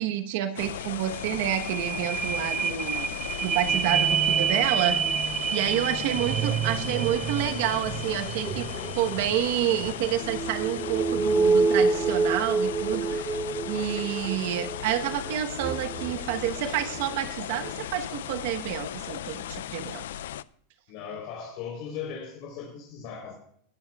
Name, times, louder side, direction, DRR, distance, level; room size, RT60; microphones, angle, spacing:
voice 1, 0.0-3.1 3.4-5.0 5.5-8.7 8.9-20.0, right 11 dB, 65° right, 7 dB, 1.1 m, -29 dB
sound 1, 0.6-20.4, left 11 dB, 85° left, 0.4 m, -37 dB
sound 2, 0.8-0.9 1.2-17.1 17.6-17.7, right 5 dB, 20° right, 0.6 m, -28 dB
sound 3, 3.1-8.0, left 2 dB, 35° left, 5.0 m, -50 dB
voice 2, 5.9-6.3 20.9-23.3, left 7 dB, 55° left, -1 dB, 3.8 m, -38 dB
19.5 x 11.5 x 2.4 m, 0.65 s
supercardioid pair, 150°, 0 cm